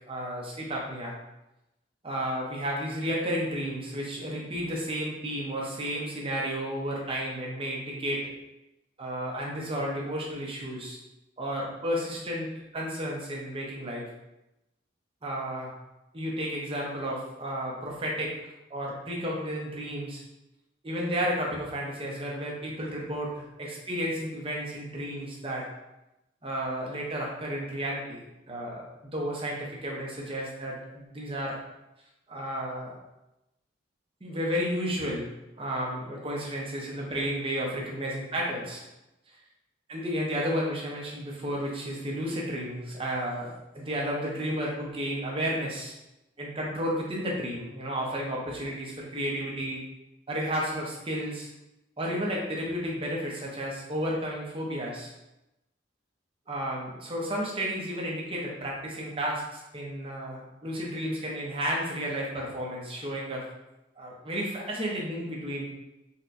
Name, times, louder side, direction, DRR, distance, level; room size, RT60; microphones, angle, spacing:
voice 1, 0.1-1.2 2.0-8.2 9.0-11.0 11.4-12.5 12.7-14.1 15.2-15.7 16.1-18.3 18.7-20.2 20.8-25.7 26.4-28.8 29.1-31.6 32.3-33.0 34.2-35.3 35.6-38.8 39.9-45.9 46.4-49.8 50.3-51.5 52.0-55.1 56.5-63.4 64.0-65.7, equal, 30° right, -3 dB, 0.6 m, -32 dB
4.2 x 2.2 x 2.5 m, 0.92 s
head